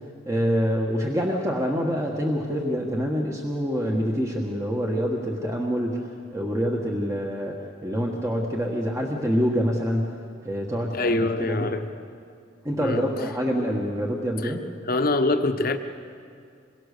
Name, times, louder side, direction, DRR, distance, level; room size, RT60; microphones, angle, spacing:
voice 1, 0.3-11.6 12.6-14.6, equal, 15° right, 0 dB, 1.5 m, -26 dB
voice 2, 10.9-11.9 12.8-13.2 14.4-14.5 14.9-15.8, left 2 dB, 50° left, 7 dB, 1.2 m, -24 dB
27.0 x 22.5 x 6.8 m, 2.3 s
head